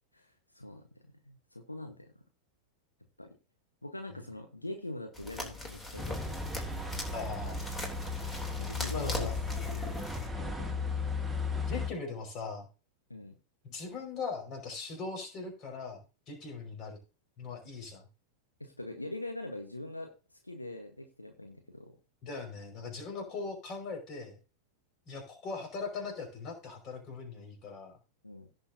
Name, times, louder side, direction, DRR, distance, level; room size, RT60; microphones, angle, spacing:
voice 1, 0.1-0.8 1.2-2.1 3.2-3.3 3.8-6.3 6.8-6.9 7.6-7.7 8.6-9.3 9.7-10.7 13.1-13.3 18.6-21.9 28.2-28.5, left 1 dB, 85° left, 5 dB, 1.4 m, -43 dB
sound 1, 5.1-10.3, left 1 dB, 15° left, 3.3 m, -40 dB
sound 2, 6.0-11.9, left 4 dB, ahead, 1.9 m, -35 dB
voice 2, 7.1-7.6 8.9-9.4 11.6-12.7 13.6-16.0 16.3-17.0 17.4-18.0 22.2-24.4 25.1-28.0, left 4 dB, 35° left, 4 dB, 5.4 m, -40 dB
17.0 x 6.6 x 2.8 m, 0.32 s
figure-of-eight pair, 90°, 0 cm